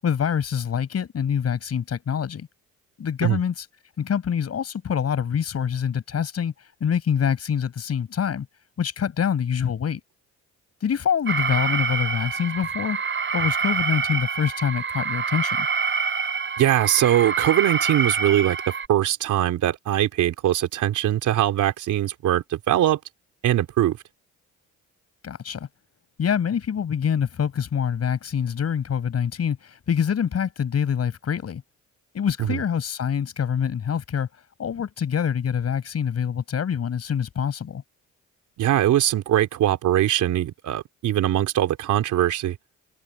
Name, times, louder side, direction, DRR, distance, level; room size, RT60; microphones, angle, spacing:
voice 1, 0.0-2.5 3.0-3.7 4.0-6.5 6.8-8.5 8.8-10.0 10.8-13.0 13.3-15.7 25.2-25.7 26.2-31.6 32.1-34.3 34.6-37.8, left 8 dB, 55° left, 6.7 m, -25 dB
Alarm, 11.3-18.9, right 5 dB, 40° right, 7.1 m, -26 dB
voice 2, 16.6-18.6 18.9-23.0 23.4-24.0 32.5-32.6 38.6-42.6, right 12 dB, 80° right, 3.5 m, -21 dB
open air
cardioid pair, 90°, 30 cm